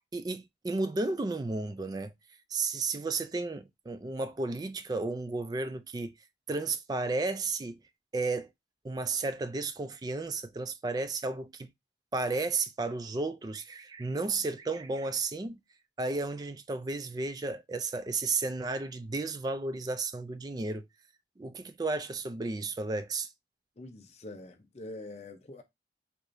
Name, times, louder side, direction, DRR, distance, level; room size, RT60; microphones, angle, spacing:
voice 1, 0.1-2.1 2.5-6.1 6.5-7.8 8.1-8.5 8.8-11.7 12.1-15.6 16.0-20.9 21.4-23.3, right 3 dB, 20° right, 0.3 m, -33 dB
voice 2, 23.8-25.6, left 2 dB, 40° left, 0.7 m, -45 dB
4.7 x 2.6 x 2.6 m
head